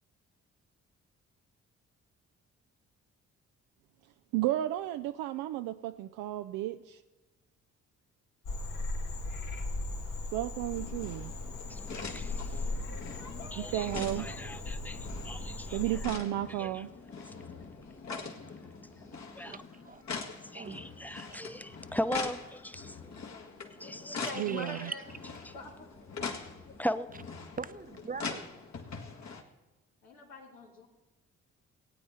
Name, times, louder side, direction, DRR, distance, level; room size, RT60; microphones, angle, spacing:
voice 1, 4.3-7.0 10.3-11.3 13.6-14.3 15.7-16.9 24.4-24.9, right 14 dB, 80° right, 0.5 m, -33 dB
Frog, 8.4-16.1, left 2 dB, 70° left, 1.7 m, -38 dB
sound 1, 10.7-29.4, left 5 dB, 55° left, 1.9 m, -43 dB
voice 2, 11.7-16.1 16.5-16.9 17.2-19.6 20.1-24.3 24.8-24.9 25.4-25.5 26.2-27.1, equal, 5° left, 0.8 m, -40 dB
voice 3, 19.4-20.0 20.5-21.2 24.2-24.9 27.6-28.4, right 5 dB, 25° right, 0.7 m, -42 dB
voice 4, 24.1-25.0 25.5-25.9 30.0-30.9, left 2 dB, 85° left, 2.3 m, -43 dB
17.0 x 9.0 x 4.3 m
hypercardioid pair, 45°, 33 cm